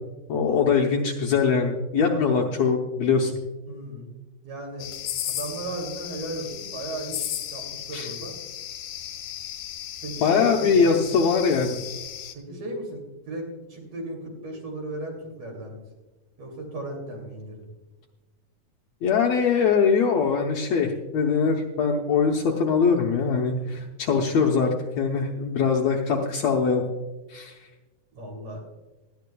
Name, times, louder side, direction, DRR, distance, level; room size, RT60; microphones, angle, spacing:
voice 1, 0.3-3.3 7.9-8.1 10.2-11.8 19.0-26.8 27.3-27.5, left 5 dB, 70° left, 1 dB, 1.8 m, -22 dB
voice 2, 3.7-4.2 4.4-4.9 5.3-8.4 10.0-11.0 12.3-15.8 16.4-17.7 23.6-23.9 28.1-28.6, right 1 dB, 50° right, 1 dB, 3.6 m, -36 dB
sound 1, 4.8-12.3, left 11 dB, 85° left, 2.6 m, -35 dB
18.5 x 12.5 x 2.3 m, 1.1 s
omnidirectional pair, 3.8 m